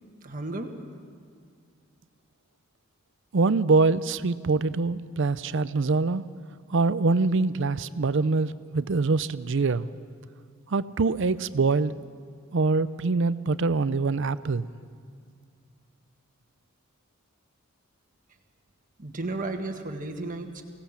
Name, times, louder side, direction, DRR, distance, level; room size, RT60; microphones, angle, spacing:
voice 1, 0.2-0.7 19.0-20.6, right 2 dB, 40° right, 4 dB, 1.7 m, -33 dB
voice 2, 3.3-6.2 6.7-9.9 10.7-11.9 12.5-14.7, right 3 dB, 60° right, 15 dB, 0.5 m, -24 dB
24.0 x 17.5 x 7.3 m, 2.1 s
head